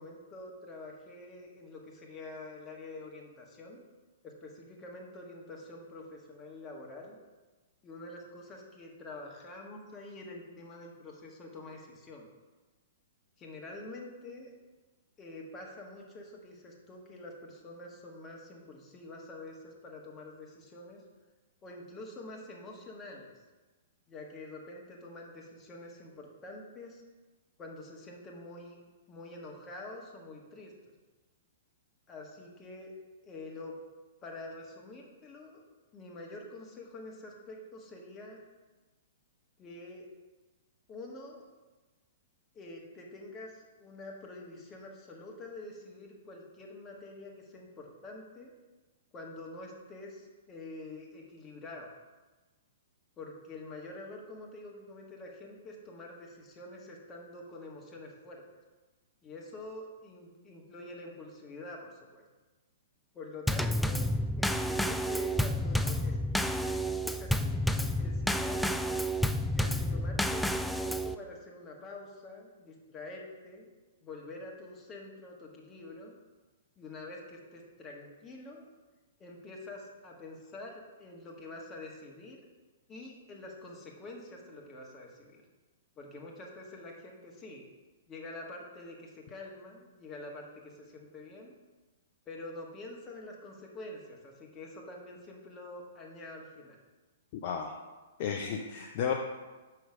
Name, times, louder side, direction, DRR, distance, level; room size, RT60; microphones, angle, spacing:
voice 1, 0.0-3.8 4.2-7.2 7.8-12.3 13.4-14.5 15.2-21.0 21.6-23.3 24.1-27.0 27.6-28.8 29.1-30.7 32.1-32.9 33.2-33.7 34.2-35.6 35.9-38.4 39.6-40.1 40.9-41.4 42.5-48.5 49.1-51.9 53.2-58.4 59.2-62.2 63.1-64.1 64.4-68.9 69.5-73.7 74.0-76.1 76.8-78.7 79.2-80.7 81.0-82.4 82.9-85.4 86.0-87.6 88.1-91.5 92.2-96.8, left 2 dB, 20° left, -1 dB, 1.6 m, -46 dB
Drum kit / Snare drum / Bass drum, 63.5-71.2, equal, ahead, 0.3 m, -30 dB
voice 2, 97.3-97.7 98.2-99.1, left 7 dB, 45° left, 2 dB, 0.6 m, -33 dB
6.2 x 5.8 x 4.9 m, 1.2 s
figure-of-eight pair, 110°, 0 cm